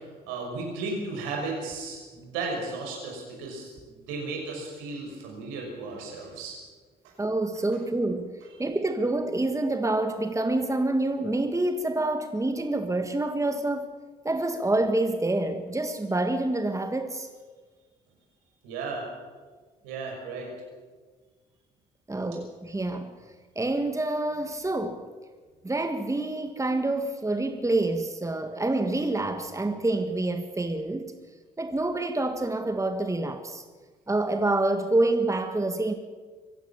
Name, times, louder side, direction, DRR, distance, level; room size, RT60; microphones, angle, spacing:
voice 1, 0.0-6.6 18.6-19.1 19.8-20.5, right 3 dB, 75° right, 0 dB, 6.0 m, -35 dB
voice 2, 7.2-13.9 14.2-17.3 22.1-23.1 23.6-25.0 25.6-31.1 31.6-33.6 34.1-35.9, right 2 dB, 15° right, 7 dB, 1.9 m, -27 dB
25.0 x 15.5 x 7.2 m, 1.4 s
hypercardioid pair, 45°, 21 cm